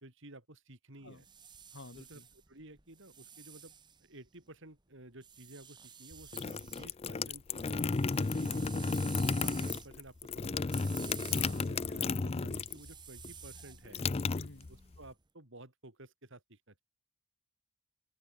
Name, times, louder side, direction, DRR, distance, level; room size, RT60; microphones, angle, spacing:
voice 1, 0.0-1.3 1.9-2.2 2.5-3.7 4.0-9.0 9.4-11.1 11.7-14.0 15.0-16.8, right 1 dB, 55° right, 3.5 m, -53 dB
sound 1, 1.0-4.5 5.2-6.9 7.2-15.1, right 7 dB, 20° right, 1.4 m, -52 dB
voice 2, 1.7-2.3 6.6-6.7 11.3-12.0 14.3-14.7, left 2 dB, 55° left, 2.1 m, -50 dB
sound 2, 6.1-12.9 13.2-15.0, left 4 dB, 25° left, 0.4 m, -33 dB
head